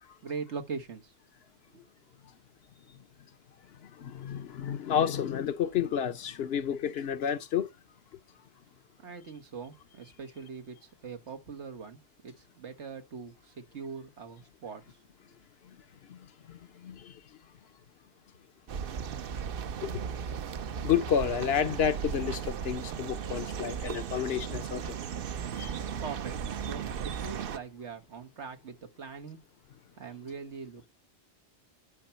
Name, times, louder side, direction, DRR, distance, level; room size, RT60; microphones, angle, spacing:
voice 1, 0.2-1.1 1.7-1.8 9.0-15.0 15.3-15.4 26.0-29.4 30.0-30.9, right 5 dB, 90° right, 1.7 m, -42 dB
voice 2, 4.0-7.7 16.1-16.2 16.5-17.1 19.8-20.0 20.8-25.0 25.6-25.7, left 8 dB, 65° left, 0.9 m, -30 dB
sound 1, 18.7-27.6, right 7 dB, 60° right, 0.8 m, -36 dB
11.0 x 5.8 x 4.3 m
omnidirectional pair, 1.1 m